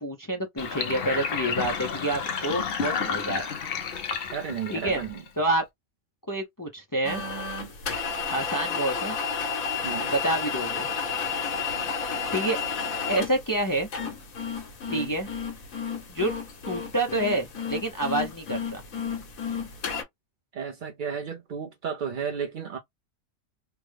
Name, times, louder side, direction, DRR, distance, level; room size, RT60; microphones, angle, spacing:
voice 1, 0.0-3.4 4.7-5.0 5.4-5.6 6.3-7.2 8.3-9.2 10.1-10.9 12.3-12.6 13.1-13.9 14.9-15.3 16.1-16.3 16.7-18.8, right 1 dB, 35° left, 0.3 m, -28 dB
Sink (filling or washing), 0.6-5.5, left 6 dB, 55° left, 0.7 m, -31 dB
voice 2, 4.3-5.2 9.8-10.1 14.9-15.1 20.5-22.8, right 7 dB, 60° right, 0.5 m, -33 dB
sound 1, 7.0-20.0, left 5 dB, 80° left, 1.5 m, -31 dB
3.4 x 2.1 x 3.2 m
omnidirectional pair, 1.4 m